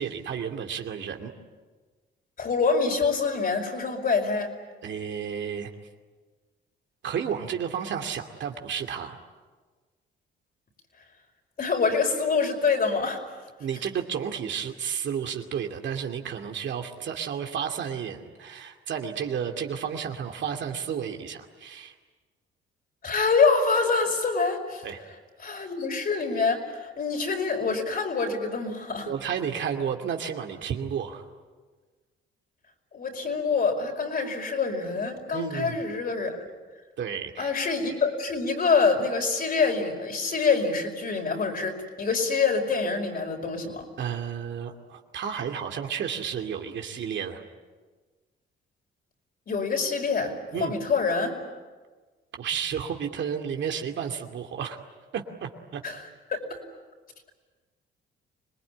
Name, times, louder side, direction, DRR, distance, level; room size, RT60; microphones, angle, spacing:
voice 1, 0.0-1.3 4.8-5.7 7.0-9.2 13.6-21.9 24.8-25.0 29.1-31.2 35.3-35.8 37.0-37.5 44.0-47.4 50.5-50.8 52.4-54.8 55.1-55.8, right 7 dB, 65° right, 3 dB, 2.5 m, -32 dB
voice 2, 2.4-4.5 11.6-13.2 23.0-24.8 25.4-29.1 32.9-36.5 37.4-43.9 49.5-51.4 55.8-56.0 56.3-56.4, left 4 dB, 50° left, 2 dB, 5.3 m, -26 dB
26.0 x 20.0 x 9.9 m, 1.4 s
cardioid pair, 90°, 20 cm